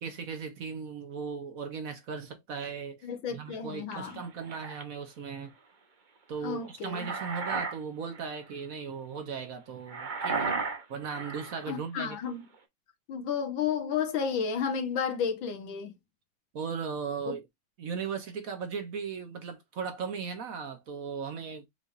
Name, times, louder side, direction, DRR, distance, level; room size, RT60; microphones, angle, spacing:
voice 1, 0.0-5.5 6.3-10.6 10.9-12.2 16.5-17.5 17.8-21.7, right 6 dB, 55° right, 1.2 m, -37 dB
voice 2, 3.0-4.2 6.4-7.1 11.7-12.5 13.1-16.0 17.3-17.4, left 7 dB, 85° left, 1.9 m, -32 dB
sound 1, 3.9-4.8 6.6-7.8 8.1-8.4 9.9-11.6, right 4 dB, 40° right, 0.7 m, -34 dB
5.5 x 3.4 x 2.5 m
omnidirectional pair, 2.1 m